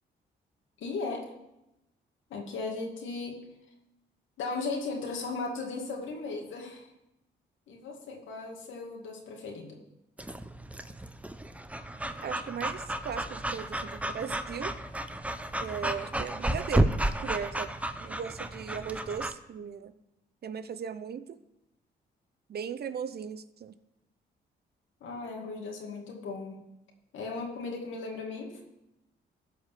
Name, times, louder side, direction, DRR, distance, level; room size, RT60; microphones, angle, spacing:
voice 1, 0.8-1.3 2.3-3.4 4.4-6.9 7.7-9.8 25.0-26.6 27.1-28.6, left 3 dB, 85° left, 0 dB, 2.3 m, -36 dB
Breathing / Dog, 10.2-19.3, right 1 dB, 5° right, 0.8 m, -32 dB
voice 2, 12.2-14.7 15.6-17.7 18.0-19.9 20.4-21.4 22.5-23.7, right 7 dB, 55° right, 11 dB, 0.7 m, -37 dB
14.0 x 5.1 x 7.5 m, 0.90 s
cardioid pair, 70°, 19 cm